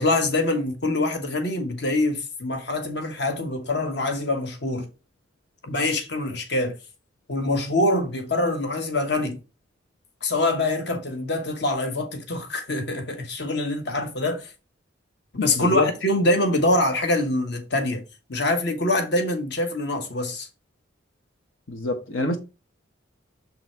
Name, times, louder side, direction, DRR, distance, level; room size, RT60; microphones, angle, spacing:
voice 1, 0.0-4.9 5.6-6.8 7.3-9.4 10.2-14.5 15.3-18.0 18.3-20.5, left 2 dB, 55° left, 1.3 m, -24 dB
voice 2, 15.6-15.9 21.7-22.4, left 3 dB, 80° left, 1.0 m, -25 dB
7.0 x 3.9 x 4.4 m
head